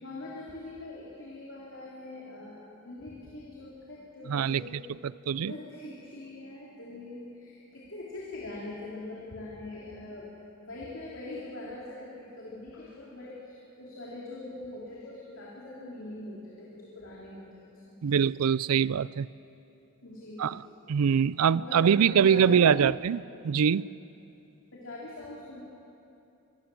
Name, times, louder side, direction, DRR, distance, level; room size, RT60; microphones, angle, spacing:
voice 1, 0.0-4.8 5.4-10.3 10.6-17.9 20.0-20.6 20.9-21.0 21.6-22.7 24.7-25.6, left 2 dB, 60° left, -4 dB, 3.2 m, -42 dB
voice 2, 4.3-5.5 18.0-19.3 20.4-20.6 20.9-23.9, right 7 dB, 85° right, 20 dB, 0.4 m, -24 dB
24.5 x 16.0 x 7.6 m, 2.8 s
head